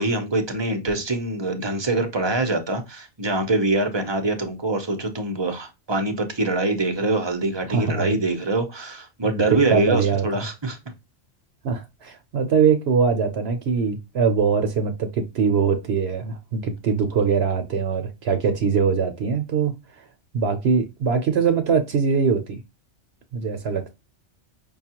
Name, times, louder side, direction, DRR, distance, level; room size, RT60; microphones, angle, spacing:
voice 1, 0.0-10.8, right 2 dB, 30° right, 0.6 m, -24 dB
voice 2, 7.7-8.2 9.2-10.4 11.6-20.0 20.3-22.6 23.3-23.9, right 6 dB, 65° right, 0.8 m, -22 dB
5.3 x 2.3 x 2.8 m
omnidirectional pair, 1.3 m